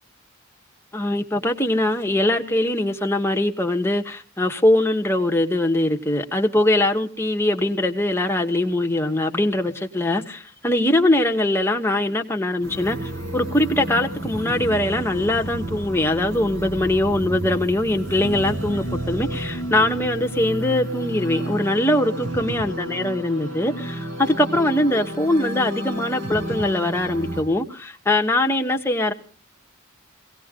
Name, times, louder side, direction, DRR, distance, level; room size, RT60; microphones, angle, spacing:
voice 1, 0.9-29.1, left 1 dB, 10° left, 4 dB, 1.4 m, -22 dB
sound 1, 12.6-27.4, right 1 dB, 70° right, 6.8 m, -31 dB
21.0 x 18.0 x 3.8 m, 0.41 s
head